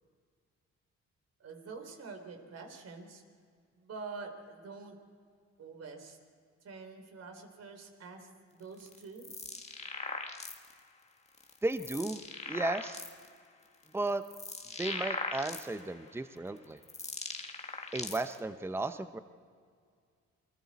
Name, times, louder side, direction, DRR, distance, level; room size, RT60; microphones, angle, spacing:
voice 1, 1.4-3.2 3.7-4.9 5.6-6.2 6.6-9.3, right 4 dB, 55° right, 5 dB, 3.6 m, -46 dB
sound 1, 8.8-10.8 11.4-13.3 13.8-16.0 16.6-18.4, left 3 dB, 20° left, 1.8 m, -40 dB
voice 2, 11.6-12.2 12.5-13.0 13.9-14.2 14.8-16.8 17.9-19.2, right 2 dB, 10° right, 10 dB, 0.8 m, -34 dB
28.5 x 22.0 x 4.2 m, 2.1 s
cardioid pair, 90°, 30 cm